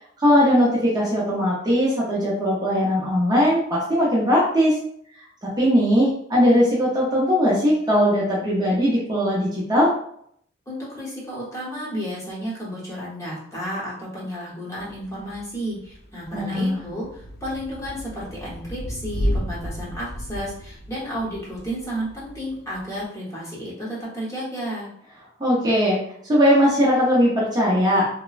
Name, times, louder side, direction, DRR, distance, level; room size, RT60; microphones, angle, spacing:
voice 1, 0.2-4.8 5.4-9.9 16.3-16.8 25.4-26.0 26.3-28.2, equal, 20° right, -6 dB, 0.5 m, -19 dB
voice 2, 10.7-24.9, equal, 15° left, -7 dB, 0.9 m, -32 dB
Thunder / Rain, 14.8-23.0, equal, 55° left, 0.5 m, -33 dB
2.9 x 2.1 x 2.4 m, 0.67 s
head